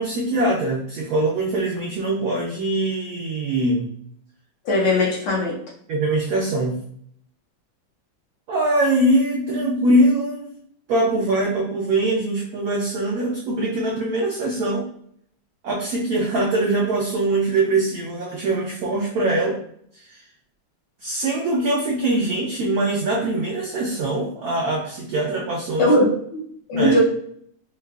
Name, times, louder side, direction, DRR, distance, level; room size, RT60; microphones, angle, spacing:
voice 1, 0.0-3.9 5.9-6.8 8.5-10.5 10.9-14.9 15.6-19.6 20.1-20.2 21.0-25.9 26.7-26.9, right 2 dB, 80° right, -2 dB, 0.8 m, -22 dB
voice 2, 4.6-5.6 25.8-27.0, left 1 dB, 70° left, -3 dB, 1.5 m, -19 dB
4.5 x 2.3 x 2.3 m, 0.65 s
omnidirectional pair, 2.1 m